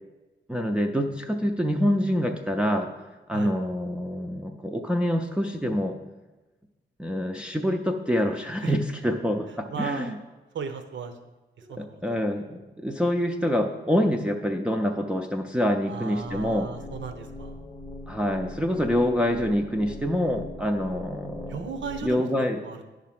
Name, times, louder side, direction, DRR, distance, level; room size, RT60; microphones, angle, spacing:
voice 1, 0.5-2.9 3.3-6.0 7.0-10.2 11.8-16.7 18.1-21.7 22.0-22.6, equal, 5° right, 2 dB, 0.4 m, -26 dB
voice 2, 9.7-10.1 10.5-11.1 11.7-12.0 15.9-17.6 21.5-22.3 22.6-22.8, right 6 dB, 75° right, 8 dB, 0.8 m, -35 dB
sound 1, 16.2-22.2, left 2 dB, 35° left, 0.7 m, -41 dB
11.0 x 3.7 x 5.9 m, 1.1 s
wide cardioid pair, 145°, 19 cm